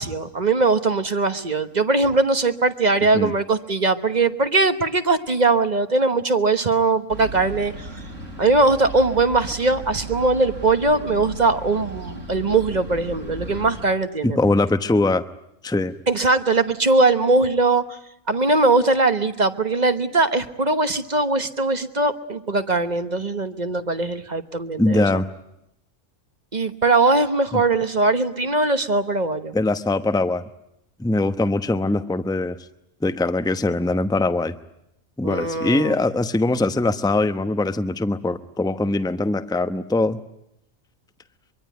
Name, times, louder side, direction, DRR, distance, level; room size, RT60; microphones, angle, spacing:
voice 1, 0.0-7.9 8.4-14.4 16.1-18.0 18.3-25.0 26.5-29.5 35.2-35.9, right 3 dB, 35° right, 10 dB, 1.2 m, -20 dB
sound 1, 7.1-13.8, right 1 dB, 85° right, 7.0 m, -36 dB
voice 2, 14.2-15.3 15.6-15.9 24.8-25.3 27.5-27.6 29.5-30.4 31.0-32.6 33.0-34.6 35.2-40.2, left 2 dB, 5° left, 9 dB, 0.8 m, -22 dB
24.0 x 23.5 x 9.3 m, 0.81 s
omnidirectional pair, 1.3 m